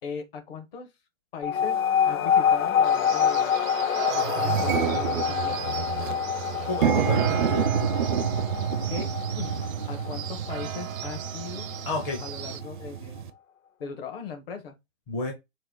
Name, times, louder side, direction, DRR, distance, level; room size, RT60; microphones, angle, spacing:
voice 1, 0.0-0.9 1.3-1.8 2.1-3.5 4.1-5.7 8.9-9.1 9.3-11.7 12.2-13.2 13.8-14.7, left 6 dB, 45° left, 1.4 m, -38 dB
sound 1, 1.4-12.3, left 8 dB, 85° left, 0.7 m, -27 dB
sound 2, 1.7-1.8 2.6-2.8 3.2-3.3 3.6-13.3, right 8 dB, 40° right, 0.4 m, -29 dB
sound 3, 2.8-12.6, right 11 dB, 90° right, 0.6 m, -38 dB
voice 2, 6.7-8.1 11.8-12.2 15.1-15.3, left 3 dB, 15° left, 0.6 m, -31 dB
4.5 x 2.3 x 3.8 m
hypercardioid pair, 155°, 39 cm